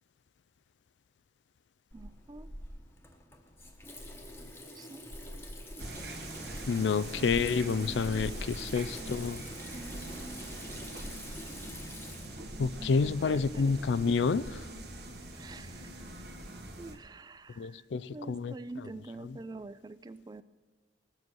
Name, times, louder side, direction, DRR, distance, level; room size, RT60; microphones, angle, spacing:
Water tap faucet / Sink (filling or washing), 1.9-14.5, left 1 dB, 15° left, 1.0 m, -46 dB
voice 1, 1.9-2.5 4.8-5.1 7.2-8.2 9.0-9.4 9.7-10.4 12.8-13.7 15.4-15.9 16.8-17.8 18.1-20.4, right 2 dB, 20° right, 15 dB, 0.3 m, -46 dB
sound 1, 5.8-17.0, right 1 dB, 70° right, 1.6 m, -43 dB
voice 2, 6.7-9.4 12.6-14.6 17.6-18.9 19.2-19.4, left 5 dB, 85° left, 17 dB, 0.4 m, -29 dB
20.0 x 7.7 x 6.1 m, 1.3 s
head